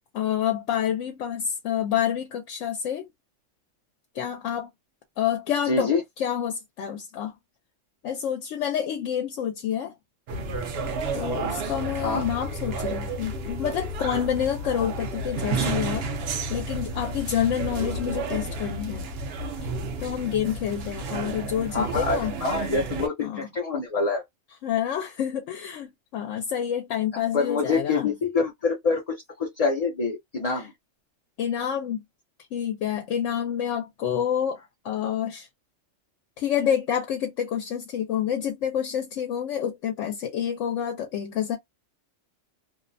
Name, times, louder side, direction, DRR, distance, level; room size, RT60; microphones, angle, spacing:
voice 1, 0.1-3.0 4.1-4.7 5.2-5.9 6.2-7.3 8.0-9.9 11.1-16.1 16.5-19.0 20.0-22.4 23.2-23.5 24.6-28.1 30.4-30.6 31.4-32.0 32.5-34.6 34.8-35.5 36.4-41.6, left 9 dB, 75° left, 0.9 m, -28 dB
voice 2, 5.7-6.0 12.0-12.3 21.7-24.2 27.1-30.7, left 4 dB, 45° left, 0.5 m, -26 dB
sound 1, 10.3-23.1, right 3 dB, 60° right, 0.8 m, -31 dB
2.6 x 2.1 x 2.5 m
omnidirectional pair, 1.3 m